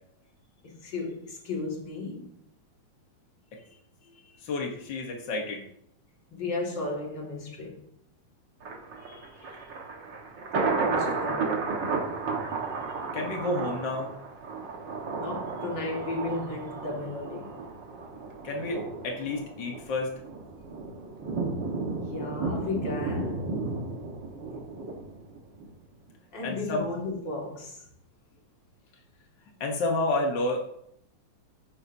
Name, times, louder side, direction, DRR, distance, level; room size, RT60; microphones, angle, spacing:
voice 1, 0.6-2.3 3.7-4.4 6.3-7.8 9.0-9.9 10.7-11.7 15.1-17.5 22.1-23.5 26.3-27.8, left 3 dB, 40° left, 2.4 m, -35 dB
voice 2, 4.4-5.6 13.1-14.1 18.4-20.1 26.4-26.9 29.6-30.7, left 2 dB, 60° left, 1.2 m, -30 dB
Thunder, 8.6-25.7 26.1-26.2, right 4 dB, 45° right, 1.7 m, -33 dB
14.5 x 10.5 x 2.8 m
omnidirectional pair, 3.7 m